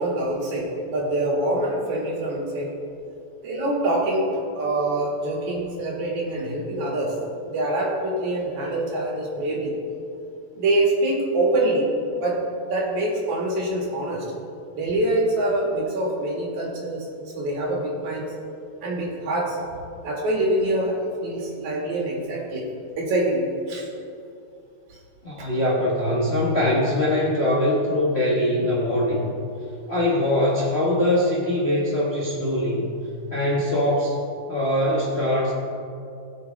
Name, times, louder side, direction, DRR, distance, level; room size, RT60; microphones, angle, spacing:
voice 1, 0.0-2.7 3.4-7.1 7.5-9.7 10.6-11.9 12.2-12.4 12.7-14.3 14.7-17.1 17.3-18.3 18.8-19.6 20.0-22.7 23.0-23.9 24.9-25.0, right 1 dB, 65° right, -3 dB, 3.3 m, -25 dB
voice 2, 25.2-29.3 29.9-32.9 33.3-34.2 34.5-35.5, left 1 dB, 35° left, -6 dB, 1.0 m, -22 dB
20.5 x 7.2 x 3.5 m, 2.6 s
omnidirectional pair, 3.7 m